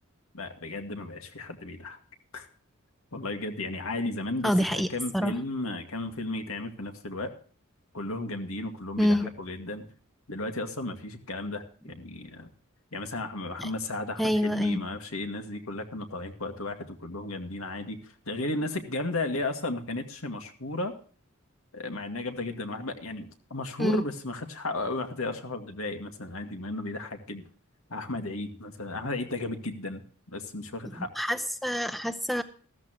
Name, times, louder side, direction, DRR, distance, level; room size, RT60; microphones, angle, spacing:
voice 1, 0.3-2.0 2.3-2.5 3.1-7.3 7.9-9.9 10.3-12.5 12.9-21.0 21.7-27.4 27.9-31.1, left 2 dB, 75° left, 5 dB, 2.1 m, -34 dB
voice 2, 4.4-4.9 5.1-5.3 9.0-9.3 13.6-13.7 14.2-14.8 23.8-24.0 31.2-32.4, equal, ahead, 10 dB, 0.7 m, -26 dB
14.5 x 13.5 x 3.0 m, 0.42 s
head